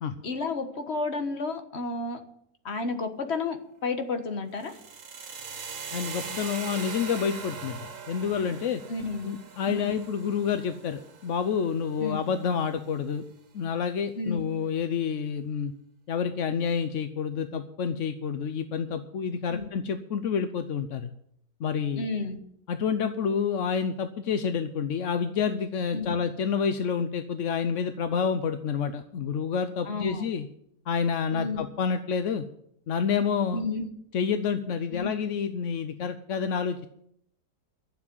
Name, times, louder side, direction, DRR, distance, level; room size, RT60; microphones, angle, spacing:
voice 1, 0.2-2.2 2.6-4.7 8.9-9.4 9.7-10.0 12.0-12.2 14.2-14.4 19.5-19.7 22.0-22.4 25.9-26.2 29.9-30.2 31.3-31.7 33.5-33.9 34.9-35.2, left 3 dB, 40° left, 7 dB, 1.5 m, -31 dB
sound 1, 4.6-12.6, right 5 dB, 50° right, 1.5 m, -41 dB
voice 2, 5.9-8.8 9.2-13.2 13.5-15.7 16.1-21.1 21.6-22.1 22.7-30.5 30.9-32.4 32.9-33.6 34.1-36.9, left 6 dB, 60° left, 9 dB, 0.8 m, -28 dB
12.0 x 7.3 x 9.9 m, 0.72 s
omnidirectional pair, 1.9 m